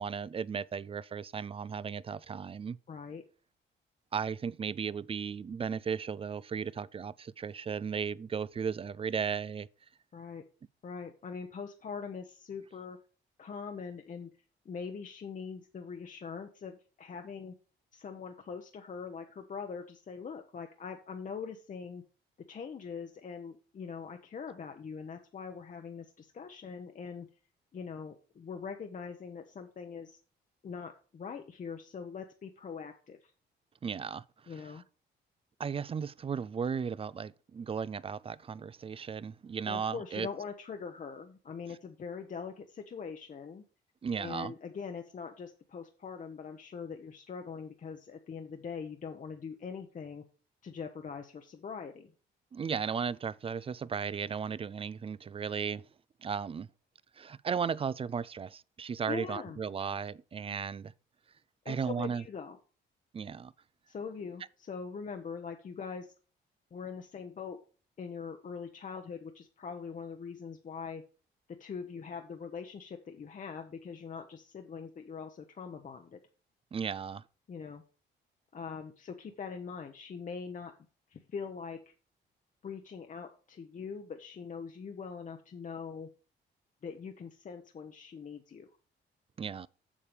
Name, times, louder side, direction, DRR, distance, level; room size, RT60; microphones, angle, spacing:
voice 1, 0.0-2.8 4.1-9.7 33.8-34.5 35.6-40.3 44.0-44.5 52.5-55.8 56.2-56.7 57.2-60.9 61.7-62.2 63.1-63.5 76.7-77.2 89.4-89.7, right 6 dB, 30° right, 0.3 m, -35 dB
voice 2, 2.9-3.2 10.1-10.4 10.8-13.0 13.4-14.3 14.6-17.6 17.9-22.0 22.5-27.3 27.7-30.2 30.6-33.3 34.5-34.8 39.7-43.6 44.2-50.2 50.6-52.1 59.1-59.6 61.6-62.6 63.9-66.1 66.7-67.6 68.0-71.0 71.5-76.2 77.5-77.8 78.5-80.7 81.1-81.8 82.6-86.1 86.8-88.7, left 6 dB, 40° left, 0.9 m, -42 dB
7.3 x 6.6 x 5.1 m
cardioid pair, 90°, 20 cm